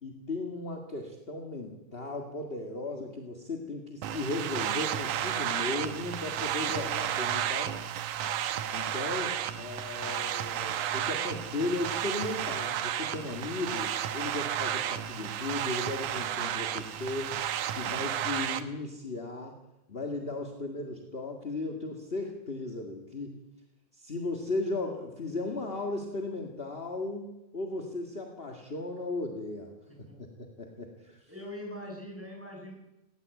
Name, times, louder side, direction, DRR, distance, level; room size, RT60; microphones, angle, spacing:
voice 1, 0.0-7.8 8.7-17.3 17.7-19.5 19.9-23.4 23.9-31.2, left 2 dB, 25° left, 3 dB, 1.6 m, -36 dB
sound 1, 4.0-18.6, right 10 dB, 85° right, 2.6 m, -32 dB
voice 2, 31.3-32.7, left 1 dB, 5° right, -1 dB, 7.1 m, -42 dB
18.5 x 18.5 x 8.3 m, 0.94 s
omnidirectional pair, 3.5 m